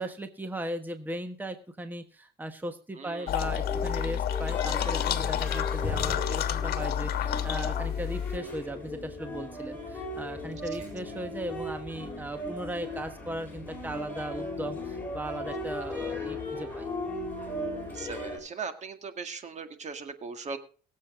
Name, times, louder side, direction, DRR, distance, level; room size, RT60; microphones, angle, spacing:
voice 1, 0.0-16.9, right 1 dB, 10° right, 8 dB, 1.3 m, -37 dB
voice 2, 3.0-3.3 10.8-10.9 17.8-20.6, right 5 dB, 45° right, 8 dB, 1.9 m, -39 dB
sound 1, 3.3-8.4, left 10 dB, 65° left, 1.3 m, -29 dB
sound 2, 3.4-18.4, left 2 dB, 10° left, 5.9 m, -37 dB
22.5 x 7.6 x 3.8 m, 0.41 s
cardioid pair, 110°, 17 cm